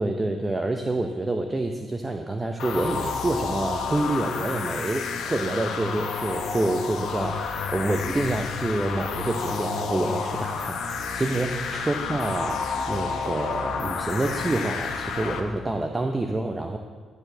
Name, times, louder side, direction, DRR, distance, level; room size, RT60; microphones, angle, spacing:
voice 1, 0.0-16.8, right 2 dB, 20° right, 5 dB, 0.7 m, -27 dB
sound 1, 2.6-15.4, left 5 dB, 70° left, 1.0 m, -30 dB
12.0 x 4.9 x 7.8 m, 1.6 s
cardioid pair, 90°, 0 cm